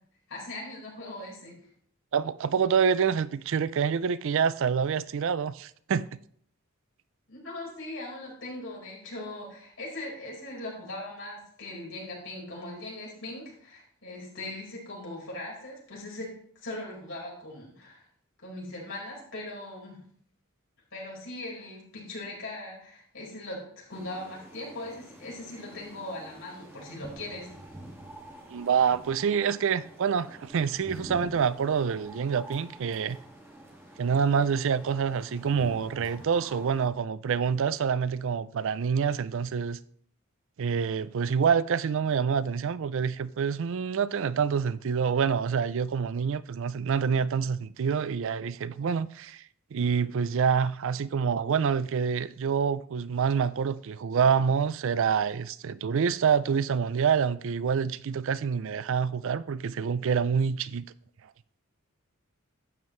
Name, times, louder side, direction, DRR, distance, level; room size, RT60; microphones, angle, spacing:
voice 1, 0.3-1.6 7.3-16.3 16.6-18.0 18.4-20.0 20.9-27.5, left 1 dB, 65° left, 4.8 m, -40 dB
voice 2, 2.1-6.0 28.5-33.2 34.0-39.8 40.6-49.4 49.7-60.9, right 6 dB, 65° right, 0.4 m, -27 dB
sound 1, 23.9-36.9, right 1 dB, 10° right, 2.0 m, -47 dB
12.0 x 9.0 x 3.2 m
head